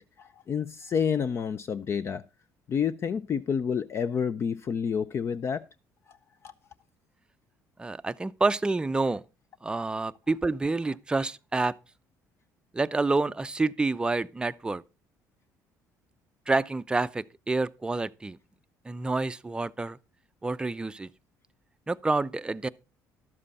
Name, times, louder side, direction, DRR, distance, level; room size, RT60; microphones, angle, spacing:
voice 1, 0.0-2.2 2.7-5.6 6.1-6.2 6.4-6.5, left 7 dB, 40° left, 0.4 m, -29 dB
voice 2, 7.8-9.2 9.6-11.7 12.7-14.8 16.5-18.4 18.8-20.0 20.4-21.1 21.9-22.7, right 3 dB, 15° right, 0.5 m, -28 dB
12.0 x 7.5 x 4.1 m
cardioid pair, 95°, 7 cm